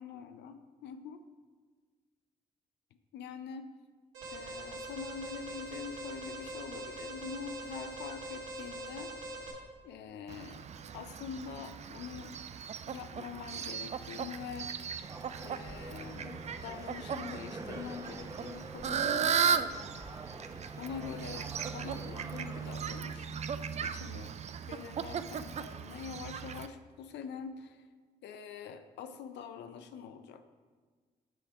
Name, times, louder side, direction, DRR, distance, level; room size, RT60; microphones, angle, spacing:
voice 1, 0.0-1.2 3.1-3.7 4.3-9.1 9.8-10.6 10.9-12.3 12.9-14.8 15.4-19.7 20.8-23.3 23.8-24.3 24.7-27.8 28.2-30.4, left 7 dB, 65° left, 9 dB, 0.5 m, -44 dB
Alarm, 4.1-9.5, right 1 dB, 85° right, 1.4 m, -43 dB
Fowl, 10.3-26.7, right 7 dB, 35° right, 0.3 m, -37 dB
sound 1, 15.0-22.7, right 2 dB, 20° right, 0.8 m, -47 dB
7.7 x 3.4 x 5.7 m, 1.5 s
hypercardioid pair, 40°, 19 cm